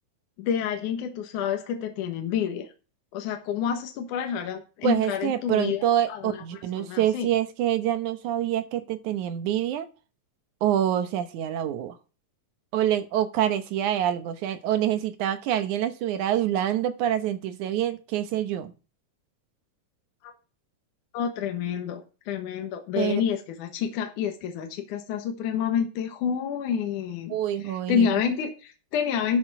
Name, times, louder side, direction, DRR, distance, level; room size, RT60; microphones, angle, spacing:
voice 1, 0.4-2.7 3.1-6.4 6.7-7.3 20.2-20.3 21.1-27.4 27.6-29.4, left 8 dB, 75° left, 5 dB, 2.8 m, -28 dB
voice 2, 4.8-9.9 10.6-12.0 12.7-18.7 23.0-23.2 27.3-28.1, right 11 dB, 70° right, 10 dB, 2.4 m, -26 dB
12.0 x 6.4 x 5.9 m, 0.33 s
omnidirectional pair, 3.7 m